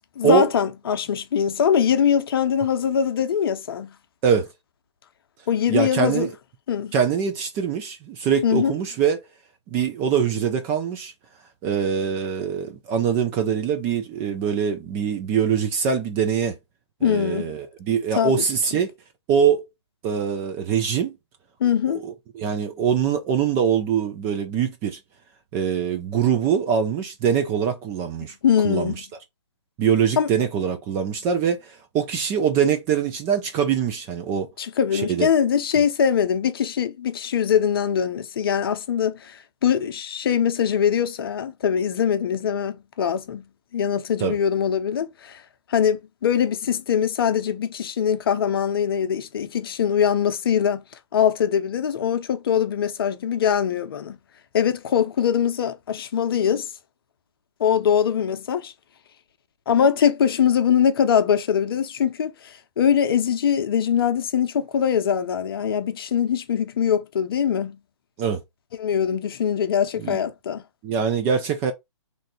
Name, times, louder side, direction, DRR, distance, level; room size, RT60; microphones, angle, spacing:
voice 1, 0.2-3.9 5.5-6.3 6.7-6.9 8.4-8.7 17.0-17.5 18.1-18.3 21.6-22.1 28.4-29.0 30.2-30.3 34.6-43.4 43.7-45.4 45.7-50.8 51.1-54.2 54.5-56.7 57.6-58.7 59.7-67.8 68.8-70.6, left 8 dB, 50° left, 0.6 m, -22 dB
voice 2, 5.7-6.3 6.9-9.2 9.7-11.1 11.6-16.6 17.0-18.9 19.3-19.6 20.0-21.2 22.0-25.0 25.5-28.3 28.6-29.0 29.8-34.5 34.9-35.3 44.2-44.4 68.2-68.4 70.0-70.2 70.8-71.7, right 7 dB, 15° right, 0.3 m, -23 dB
3.2 x 2.5 x 3.8 m
hypercardioid pair, 150°, 15 cm